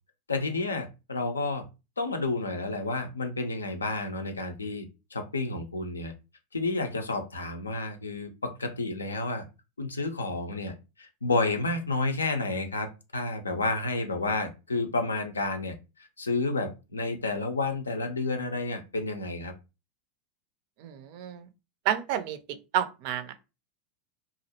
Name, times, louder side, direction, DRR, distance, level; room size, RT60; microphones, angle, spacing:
voice 1, 0.3-1.7 2.0-6.1 6.5-9.5 9.8-19.5, left 3 dB, 90° left, 0.4 m, -30 dB
voice 2, 20.8-21.5 21.9-23.3, right 10 dB, 55° right, 0.4 m, -30 dB
2.5 x 2.0 x 2.7 m
hypercardioid pair, 90°, 0 cm